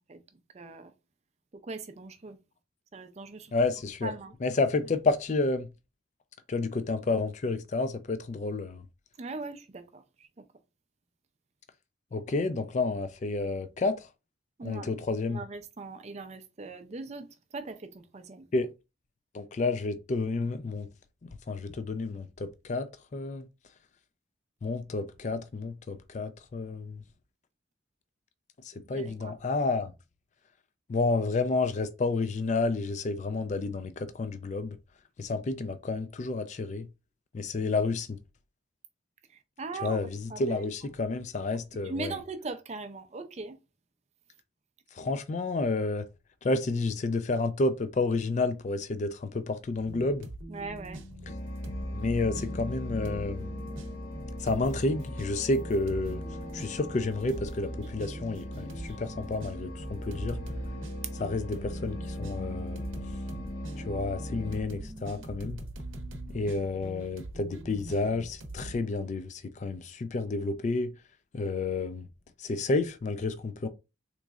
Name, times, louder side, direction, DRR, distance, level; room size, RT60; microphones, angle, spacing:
voice 1, 0.5-0.9 1.5-2.4 2.9-3.5 4.0-4.3 9.2-10.4 14.6-14.9 15.3-18.5 28.9-29.3 39.6-40.0 40.3-40.4 41.8-43.6 50.5-51.0, right 3 dB, 35° right, 0.4 m, -40 dB
voice 2, 3.5-4.1 4.4-5.7 6.5-8.8 12.1-14.1 14.6-15.4 18.5-18.7 19.3-20.9 21.5-23.5 24.6-27.0 28.6-29.9 30.9-34.8 35.2-36.9 37.3-38.2 39.8-42.2 44.9-46.1 46.4-50.3 51.9-53.5 54.4-56.2 56.5-60.4 61.2-62.9 63.8-65.7 66.3-70.9 71.3-72.1 72.4-73.7, left 3 dB, 35° left, 0.3 m, -30 dB
sound 1, 49.7-68.8, right 1 dB, 75° right, 0.7 m, -43 dB
sound 2, 51.2-64.6, left 1 dB, 60° left, 1.3 m, -38 dB
3.6 x 3.0 x 2.4 m
head